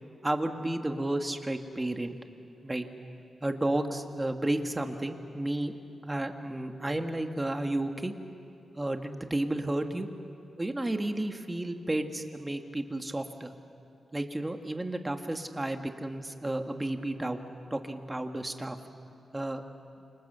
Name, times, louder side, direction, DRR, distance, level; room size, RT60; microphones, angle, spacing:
voice 1, 0.2-2.1 2.6-2.9 3.4-5.7 6.0-8.1 8.7-10.1 10.6-13.5 14.1-17.4 17.7-18.8 19.3-19.6, right 1 dB, 20° right, 5 dB, 1.8 m, -32 dB
29.0 x 26.5 x 6.9 m, 2.6 s
cardioid pair, 90°, 0 cm